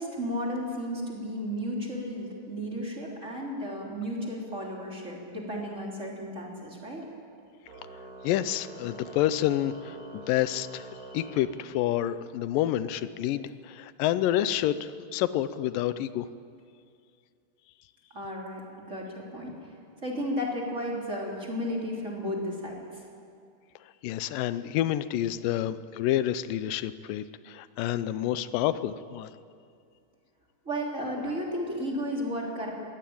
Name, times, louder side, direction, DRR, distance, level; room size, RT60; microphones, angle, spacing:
voice 1, 0.0-7.1 18.1-19.7 20.0-23.0 30.7-32.7, equal, 20° right, -2 dB, 3.4 m, -33 dB
Organ, 7.7-12.2, right 3 dB, 90° right, 4.0 m, -46 dB
voice 2, 8.2-10.9 11.1-16.3 24.0-29.3, left 12 dB, 90° left, 14 dB, 2.4 m, -28 dB
21.5 x 17.0 x 8.7 m, 2.3 s
omnidirectional pair, 3.8 m